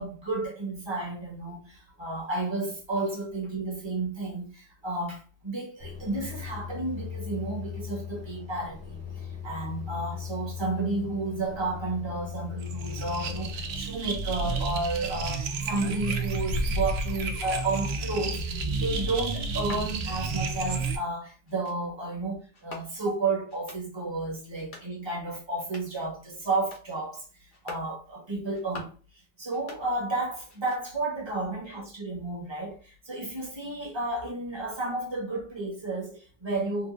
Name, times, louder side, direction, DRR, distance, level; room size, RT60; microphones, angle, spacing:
voice 1, 0.0-27.2 27.6-28.9 29.4-36.9, right 2 dB, 25° right, 1.1 m, -32 dB
sound 1, 5.8-13.8, left 8 dB, 10° right, 0.8 m, -39 dB
sound 2, 12.6-21.0, right 3 dB, 80° right, 0.9 m, -31 dB
sound 3, 19.5-19.9 20.5-20.8 21.5-21.8 22.5-23.2 23.5-23.8 24.5-24.9 25.5-26.0 26.5-26.9 27.5-27.9 28.5-29.0 29.5-30.2 30.5-31.0, left 2 dB, 55° left, 1.0 m, -47 dB
3.9 x 2.5 x 2.5 m
omnidirectional pair, 1.1 m